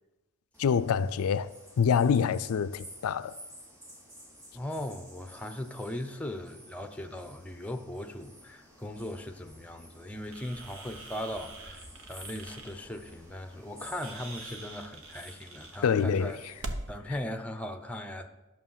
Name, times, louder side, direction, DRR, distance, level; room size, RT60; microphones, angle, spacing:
sound 1, 0.5-16.7, equal, 15° right, 2.8 m, -52 dB
voice 1, 0.6-1.5 1.8-3.3 15.8-16.4, left 6 dB, 80° left, 0.4 m, -26 dB
voice 2, 4.5-16.4 16.9-18.3, left 1 dB, 5° left, 0.6 m, -38 dB
sound 2, 10.3-15.9, right 3 dB, 65° right, 1.5 m, -48 dB
sound 3, 10.7-17.0, right 1 dB, 80° right, 0.8 m, -46 dB
11.5 x 6.4 x 5.6 m
head